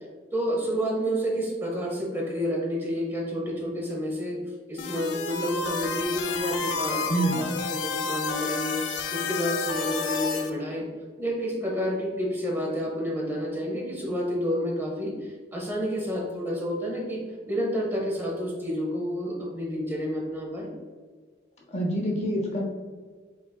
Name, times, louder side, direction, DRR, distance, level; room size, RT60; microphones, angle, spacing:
voice 1, 0.3-4.4 4.7-8.8 9.1-10.9 11.2-20.7, equal, 10° right, -2 dB, 0.8 m, -29 dB
sound 1, 4.8-10.5, left 5 dB, 70° left, 0.4 m, -30 dB
voice 2, 7.1-7.5 21.7-22.6, right 1 dB, 35° left, -1 dB, 0.7 m, -27 dB
4.8 x 4.0 x 2.3 m, 1.5 s
head